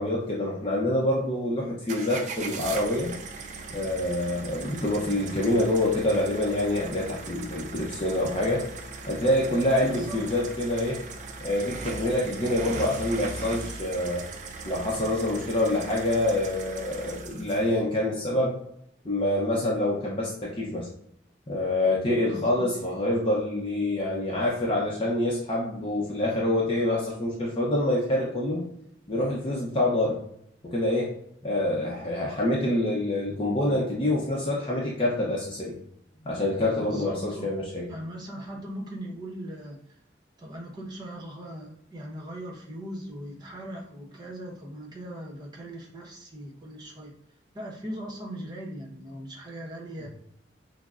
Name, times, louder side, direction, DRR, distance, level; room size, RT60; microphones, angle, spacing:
voice 1, 0.0-3.1 3.7-8.6 9.1-11.0 11.4-14.2 14.6-18.6 19.0-20.9 21.5-28.6 29.1-30.2 30.6-31.1 31.4-35.7 36.2-37.8 50.0-50.1, left 1 dB, 30° left, -4 dB, 0.6 m, -26 dB
sound 1, 1.9-17.8, right 3 dB, 40° right, 0.4 m, -39 dB
voice 2, 9.8-10.4 22.3-22.9 36.8-37.5 37.9-39.8 40.4-47.1 47.5-50.1, right 1 dB, 20° right, -1 dB, 0.8 m, -39 dB
6.0 x 2.0 x 2.4 m, 0.75 s
head